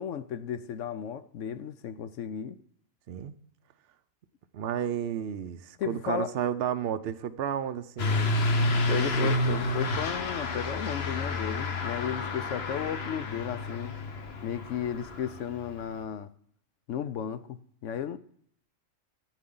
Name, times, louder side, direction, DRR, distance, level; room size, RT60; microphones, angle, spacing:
voice 1, 0.0-2.6 5.8-6.4 8.9-13.9 14.4-16.3 16.9-18.2, left 8 dB, 65° left, 0.9 m, -34 dB
voice 2, 4.5-8.3 8.9-9.3, right 9 dB, 60° right, 0.6 m, -32 dB
Truck / Accelerating revving vroom, 8.0-16.0, left 2 dB, 50° left, 1.2 m, -30 dB
15.0 x 9.0 x 3.8 m
omnidirectional pair, 1.5 m